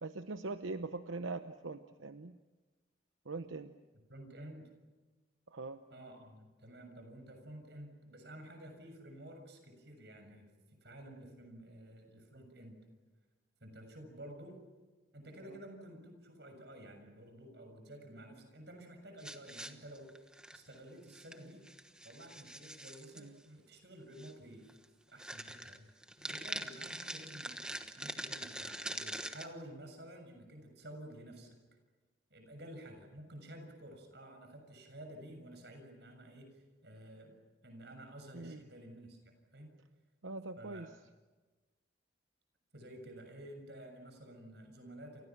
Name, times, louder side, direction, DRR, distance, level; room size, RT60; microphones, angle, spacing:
voice 1, 0.0-2.4 3.3-3.7 5.5-5.8 23.2-23.4 38.3-38.7 40.2-40.9, right 3 dB, 90° right, 9 dB, 0.9 m, -42 dB
voice 2, 4.1-4.7 5.9-10.5 10.8-12.8 13.6-14.6 15.1-21.6 22.0-24.7 25.1-25.9 26.2-31.6 32.3-37.4 37.6-39.7 40.6-40.9 42.7-45.3, right 1 dB, 60° right, 5 dB, 6.9 m, -51 dB
sound 1, 19.2-20.8 21.1-21.4 21.7-23.2 24.2-24.3 24.7-24.8 25.2-29.5, right 1 dB, 5° right, 1.2 m, -43 dB
29.5 x 28.0 x 6.0 m, 1.2 s
head